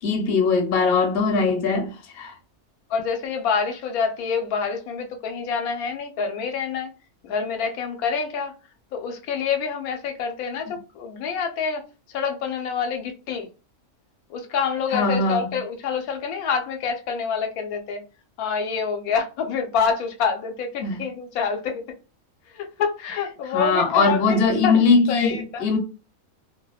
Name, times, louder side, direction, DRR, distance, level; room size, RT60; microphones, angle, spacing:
voice 1, 0.0-2.4 14.9-15.6 20.8-21.0 23.5-25.8, left 4 dB, 55° left, 0.8 m, -21 dB
voice 2, 2.9-6.9 7.2-8.5 8.9-13.5 14.3-18.0 18.4-21.9 22.5-24.8 25.1-25.7, left 6 dB, 80° left, 1.1 m, -27 dB
2.6 x 2.1 x 2.2 m
omnidirectional pair, 1.5 m